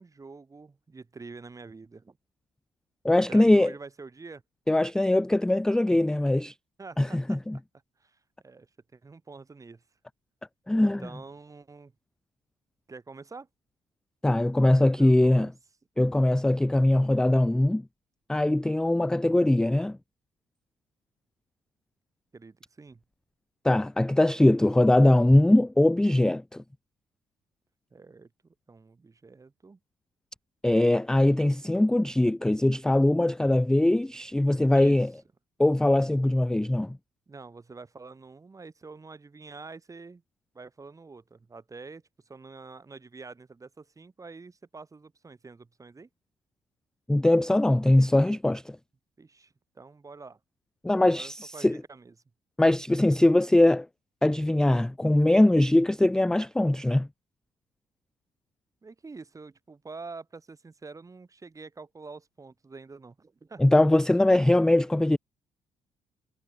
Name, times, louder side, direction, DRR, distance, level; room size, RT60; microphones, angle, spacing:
voice 1, 0.0-2.2 3.3-4.4 6.8-7.4 8.0-9.8 10.8-11.9 12.9-13.5 14.8-15.5 22.3-23.0 27.9-29.8 34.7-35.1 37.3-40.2 40.5-46.1 49.2-50.4 51.1-52.1 58.8-63.7, right 4 dB, 25° right, 4.4 m, -46 dB
voice 2, 3.0-3.7 4.7-6.5 7.0-7.6 10.7-11.0 14.2-15.5 16.0-17.8 18.3-20.0 23.6-26.6 30.6-35.1 35.6-37.0 47.1-48.8 50.8-51.8 52.6-53.9 54.2-57.1 63.6-65.2, left 1 dB, 5° left, 0.3 m, -21 dB
cardioid pair, 85°, 12 cm